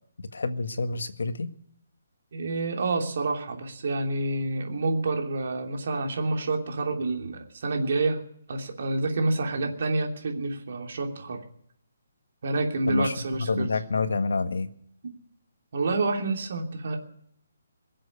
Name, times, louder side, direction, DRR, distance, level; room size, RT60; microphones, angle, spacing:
voice 1, 0.2-1.5 12.9-13.1 13.5-14.7, left 3 dB, 80° left, 9 dB, 1.6 m, -28 dB
voice 2, 2.3-8.2 8.5-11.4 12.4-13.7 15.7-17.0, right 3 dB, 45° right, 2 dB, 3.0 m, -28 dB
22.0 x 7.7 x 8.4 m, 0.68 s
hypercardioid pair, 175°, 0 cm